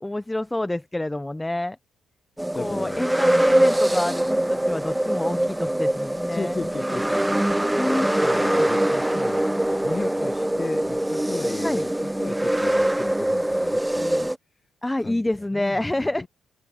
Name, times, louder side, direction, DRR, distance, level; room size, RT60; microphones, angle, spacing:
voice 1, 0.0-1.8 2.5-6.6 7.8-8.1 8.6-8.7 11.6-11.9 14.8-16.3, left 1 dB, 15° left, 1.2 m, -28 dB
sound 1, 2.4-14.3, right 1 dB, 10° right, 0.5 m, -23 dB
voice 2, 2.5-3.0 6.3-7.6 8.2-9.5 9.8-14.3 15.0-16.3, left 3 dB, 35° left, 2.0 m, -35 dB
supercardioid pair, 55°, 0 cm